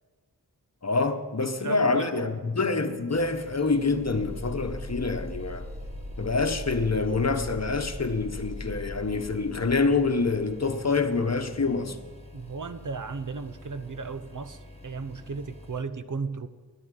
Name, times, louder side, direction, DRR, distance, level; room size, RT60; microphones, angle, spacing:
voice 1, 0.8-5.7 6.2-12.0, left 3 dB, 40° left, 1.2 m, -26 dB
voice 2, 1.6-2.4 12.3-16.5, right 4 dB, 50° right, 0.8 m, -35 dB
sound 1, 3.1-15.8, left 1 dB, 15° left, 1.8 m, -48 dB
sound 2, 4.0-10.6, left 1 dB, 20° right, 3.8 m, -39 dB
11.0 x 10.0 x 9.9 m
wide cardioid pair, 65°, 38 cm